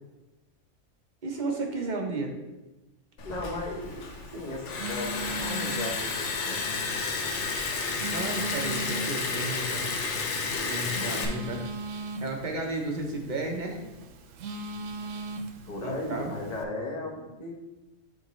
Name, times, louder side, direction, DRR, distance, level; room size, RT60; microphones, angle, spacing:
voice 1, 1.2-2.3 8.1-9.9 10.6-11.7 12.2-13.8 15.8-16.3, right 2 dB, 40° right, 1 dB, 1.1 m, -33 dB
Liquid, 3.2-11.3, left 4 dB, 70° left, 1.2 m, -31 dB
voice 2, 3.2-4.1 4.3-6.7 15.7-17.5, left 2 dB, 35° left, -2 dB, 1.2 m, -36 dB
Telephone, 3.8-16.6, right 2 dB, 90° right, 1.1 m, -40 dB
10.5 x 3.6 x 3.1 m, 1.1 s
omnidirectional pair, 1.3 m